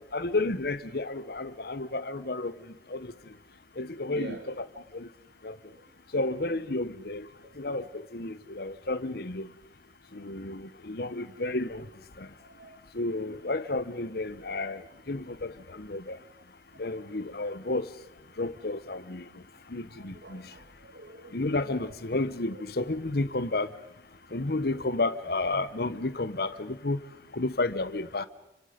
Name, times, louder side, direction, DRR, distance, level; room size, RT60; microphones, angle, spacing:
voice 1, 0.0-3.1 3.8-4.7 4.9-5.1 5.4-5.6 6.1-7.3 7.6-9.5 10.1-11.9 12.2-12.3 12.9-16.2 16.8-17.9 18.4-19.4 19.7-20.5 21.3-23.7 24.3-27.0 27.3-28.3, left 2 dB, 60° left, 1.1 m, -32 dB
voice 2, 4.1-4.4 5.7-5.8 7.4-7.6 12.4-12.8 20.0-21.9 24.7-24.8, right 1 dB, 65° right, 1.6 m, -46 dB
29.5 x 26.0 x 5.2 m
head